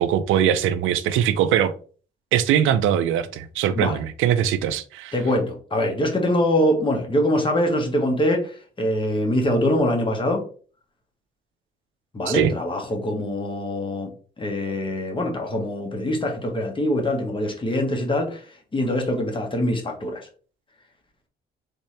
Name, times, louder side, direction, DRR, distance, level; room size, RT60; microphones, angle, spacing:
voice 1, 0.0-1.8 2.3-5.1 12.3-12.5, right 10 dB, 85° right, 12 dB, 0.4 m, -21 dB
voice 2, 5.1-8.5 8.8-10.4 12.1-14.1 14.4-18.4 18.7-20.3, left 1 dB, 25° left, 2 dB, 1.1 m, -23 dB
3.5 x 2.8 x 3.2 m, 0.40 s
cardioid pair, 90°, 20 cm